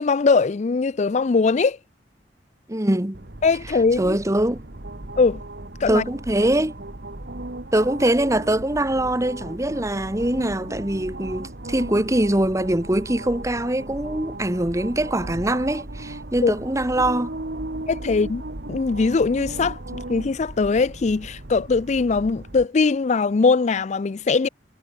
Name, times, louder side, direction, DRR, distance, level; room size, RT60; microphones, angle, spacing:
voice 1, 0.0-1.8 3.4-4.2 5.2-5.4 5.8-6.0 16.4-16.5 17.9-18.4 18.7-19.8 20.1-24.5, left 4 dB, 40° left, 0.4 m, -21 dB
voice 2, 2.7-3.2 4.0-4.6 5.9-6.7 7.7-17.3, right 1 dB, 20° right, 1.5 m, -23 dB
sound 1, 3.1-22.7, right 1 dB, 60° right, 1.9 m, -36 dB
head